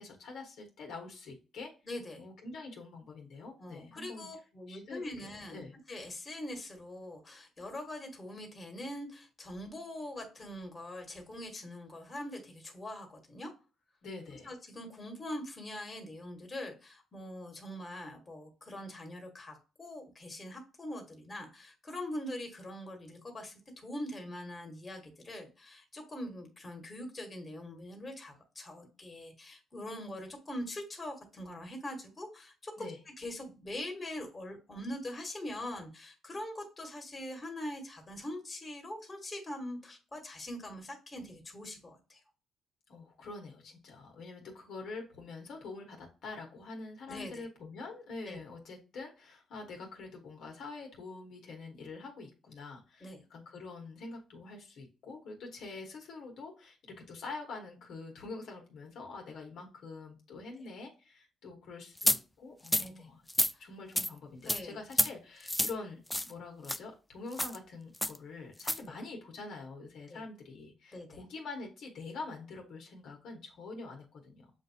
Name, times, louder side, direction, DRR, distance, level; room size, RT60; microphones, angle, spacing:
voice 1, 0.0-1.7 2.2-4.3 4.7-5.7 14.0-14.5 32.8-33.0 42.9-63.3 63.6-74.5, left 3 dB, 75° left, 2 dB, 1.4 m, -45 dB
voice 2, 1.9-2.2 3.6-13.5 14.3-32.9 33.2-42.2 47.1-47.5 48.2-48.4 53.0-53.2 62.8-63.1 63.5-63.7 64.4-64.8 68.8-69.0 70.1-70.2 70.9-71.2, left 1 dB, 25° left, 3 dB, 1.7 m, -43 dB
sound 1, 62.0-62.2 62.7-62.9 63.3-63.5 64.0-64.1 64.5-64.6 64.9-65.1 65.5-65.7 66.1-66.3 66.6-66.8 67.3-67.6 68.0-68.2 68.6-68.8, left 1 dB, 10° left, 0.3 m, -28 dB
7.1 x 2.7 x 2.8 m, 0.33 s
cardioid pair, 90°, 0 cm